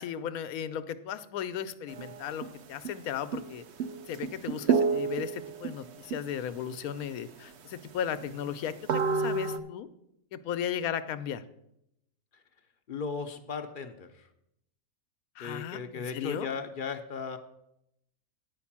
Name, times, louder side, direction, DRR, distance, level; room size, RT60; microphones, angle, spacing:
voice 1, 0.0-3.6 4.1-8.7 9.1-9.9 10.3-11.4 15.4-16.5, left 9 dB, 80° left, 12 dB, 1.1 m, -35 dB
sound 1, 1.9-2.5 2.8-2.9 3.3-3.5 3.8-5.7 6.1-6.6 7.0-7.1 7.5-7.6 8.2-9.6, right 5 dB, 60° right, 0.8 m, -30 dB
voice 2, 12.9-14.3 15.4-17.4, left 5 dB, 50° left, 7 dB, 0.6 m, -36 dB
9.6 x 5.3 x 7.2 m, 0.81 s
omnidirectional pair, 1.5 m